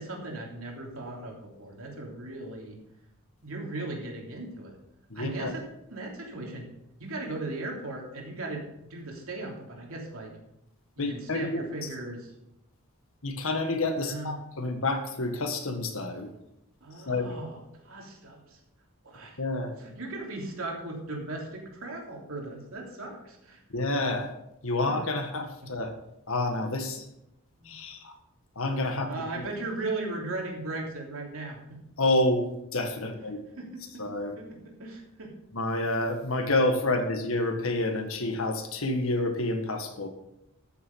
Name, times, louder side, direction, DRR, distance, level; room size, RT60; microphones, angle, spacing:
voice 1, 0.0-2.8 3.4-4.8 5.1-5.6 5.9-6.7 7.0-8.6 8.9-10.3 11.0-12.3 14.0-14.4 16.8-18.6 19.0-19.4 19.8-23.6 27.6-27.7 28.9-31.6 33.0-33.1 33.6-33.8 34.4-35.3, right 2 dB, 65° right, 0 dB, 3.1 m, -37 dB
voice 2, 5.1-5.5 11.0-11.9 13.2-16.3 17.1-17.4 19.4-19.7 23.7-24.3 24.6-25.9 26.3-27.0 27.6-28.1 28.5-29.4 32.0-33.5 34.0-34.3 35.5-40.1, left 2 dB, 65° left, 5 dB, 1.6 m, -29 dB
13.5 x 7.2 x 5.4 m, 0.84 s
head